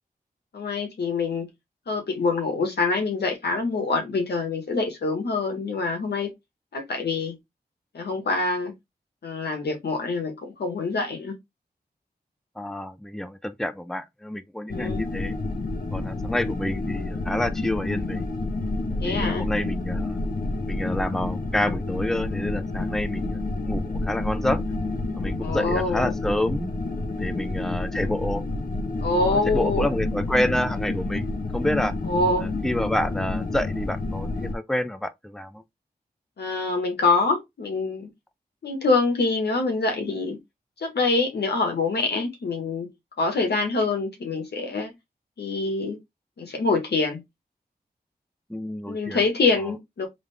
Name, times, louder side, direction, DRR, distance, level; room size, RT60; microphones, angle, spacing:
voice 1, 0.5-1.5 1.9-6.3 6.7-7.3 7.9-8.7 9.2-11.3 14.7-15.1 19.0-19.5 25.4-26.2 29.0-29.9 32.1-32.5 36.4-38.1 38.6-40.4 40.8-42.9 43.2-44.9 45.4-46.0 46.4-47.2 48.9-50.1, left 3 dB, 90° left, 1.6 m, -25 dB
voice 2, 12.6-15.3 15.9-18.3 19.0-20.2 20.7-24.6 25.1-26.7 27.2-28.4 29.1-31.3 31.5-31.9 32.4-35.6 48.5-49.2, left 1 dB, 5° left, 0.7 m, -28 dB
sound 1, 14.7-34.5, left 2 dB, 60° left, 1.2 m, -29 dB
3.6 x 3.6 x 3.4 m
cardioid pair, 50°, 17 cm